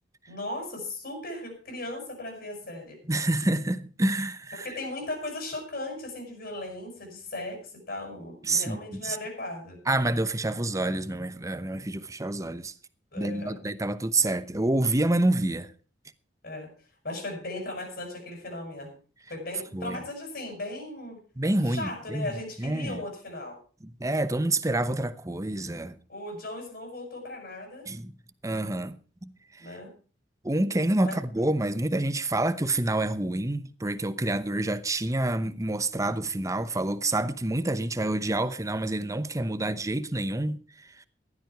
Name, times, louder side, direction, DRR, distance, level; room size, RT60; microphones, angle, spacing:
voice 1, 0.3-3.0 4.6-9.8 13.1-13.6 16.4-16.7 17.0-19.0 19.3-21.2 21.7-23.6 26.1-27.9 29.6-29.9 31.0-31.2, left 2 dB, 55° left, 7.0 m, -37 dB
voice 2, 3.1-4.7 8.4-9.2 9.9-12.7 13.2-15.7 19.7-20.0 21.4-22.3 22.6-23.0 23.8-26.0 27.9-28.1 28.4-29.7 30.4-40.6, right 2 dB, 15° right, 0.8 m, -28 dB
15.5 x 12.0 x 4.7 m
head